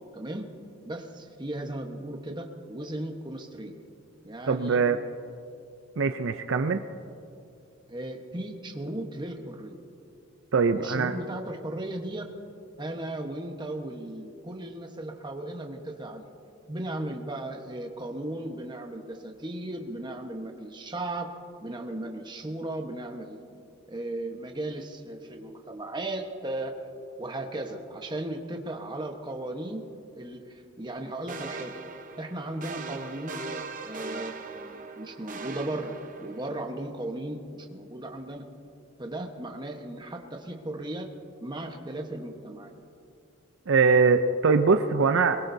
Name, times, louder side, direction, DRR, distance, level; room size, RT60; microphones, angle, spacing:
voice 1, 0.1-0.5 0.8-3.8 4.2-4.8 7.9-9.8 10.7-12.3 12.8-16.3 16.7-23.4 23.9-26.8 27.2-29.8 30.2-31.8 32.2-33.4 33.8-34.4 35.0-38.4 39.0-41.1 41.4-42.8, right 1 dB, 20° right, 3 dB, 1.1 m, -36 dB
voice 2, 4.5-5.0 6.0-6.8 10.5-11.2 43.7-45.4, right 4 dB, 60° right, 8 dB, 0.5 m, -22 dB
sound 1, 31.3-36.6, right 4 dB, 40° right, 0.8 m, -40 dB
23.0 x 21.5 x 2.7 m, 2.6 s
head